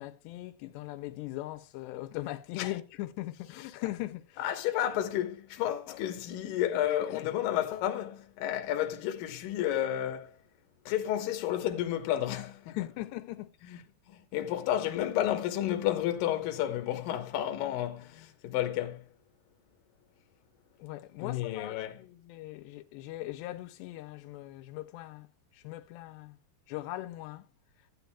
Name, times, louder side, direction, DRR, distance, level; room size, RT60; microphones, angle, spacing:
voice 1, 0.0-4.5 7.1-7.3 12.7-13.8 20.8-25.3 25.5-26.4 26.7-27.5, left 16 dB, 85° left, 2.8 m, -40 dB
voice 2, 4.4-10.4 10.9-12.8 13.7-13.8 14.1-19.1 21.2-22.0, left 12 dB, 70° left, 2.4 m, -31 dB
15.0 x 9.3 x 2.2 m
omnidirectional pair, 4.8 m